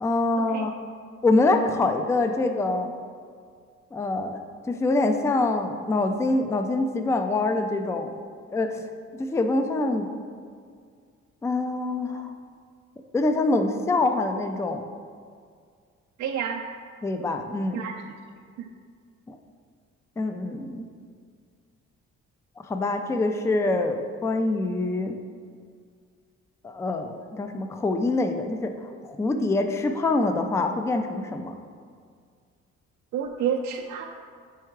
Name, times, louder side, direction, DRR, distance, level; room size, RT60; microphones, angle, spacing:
voice 1, 0.0-0.7 1.2-2.9 3.9-4.4 4.7-8.1 8.5-8.8 9.2-10.1 11.4-12.3 13.1-14.8 17.0-17.8 19.3-19.4 20.2-20.9 22.6-25.2 26.6-31.5, left 2 dB, 10° left, 6 dB, 0.3 m, -25 dB
voice 2, 16.2-16.6 17.7-17.9 18.6-18.7 33.1-34.0, right 8 dB, 65° right, 0 dB, 0.5 m, -29 dB
4.7 x 4.5 x 4.6 m, 2.1 s
cardioid pair, 90°, 30 cm